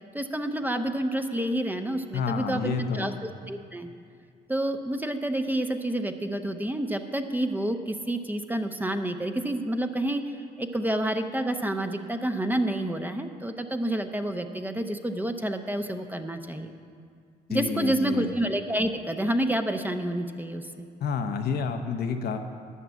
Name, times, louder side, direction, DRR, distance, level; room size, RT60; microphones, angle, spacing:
voice 1, 0.1-3.9 4.5-16.8 17.5-20.9, right 1 dB, 10° right, 6 dB, 0.8 m, -29 dB
voice 2, 2.1-3.2 17.5-18.3 21.0-22.4, left 5 dB, 60° left, 6 dB, 0.9 m, -29 dB
11.0 x 6.0 x 8.3 m, 2.2 s
supercardioid pair, 60°, 19 cm